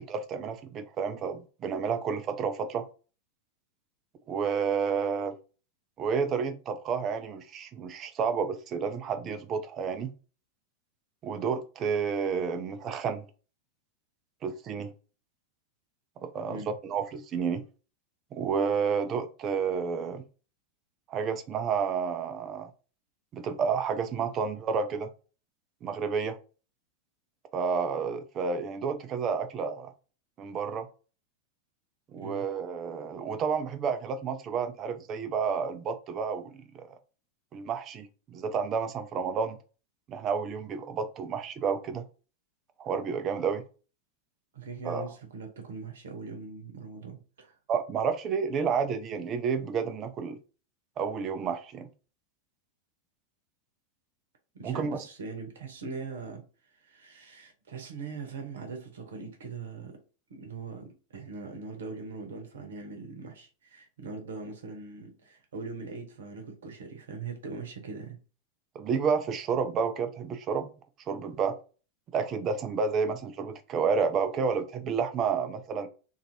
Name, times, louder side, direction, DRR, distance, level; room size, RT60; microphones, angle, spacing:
voice 1, 0.0-2.9 4.3-5.3 6.0-10.1 11.2-13.2 14.4-14.9 16.2-17.6 18.3-20.2 21.1-22.7 23.3-25.1 25.8-26.4 27.5-29.9 30.4-30.9 32.1-36.8 37.5-39.6 40.1-42.0 42.8-43.6 44.8-45.0 47.7-50.4 51.0-51.9 54.6-55.0 68.7-70.7 71.1-71.6 72.1-75.9, right 6 dB, 30° right, 0.4 m, -30 dB
voice 2, 44.5-47.5 54.5-56.4 56.7-60.0 60.3-68.2, right 4 dB, 65° right, 0.8 m, -41 dB
2.8 x 2.5 x 2.8 m
figure-of-eight pair, 90°, 0 cm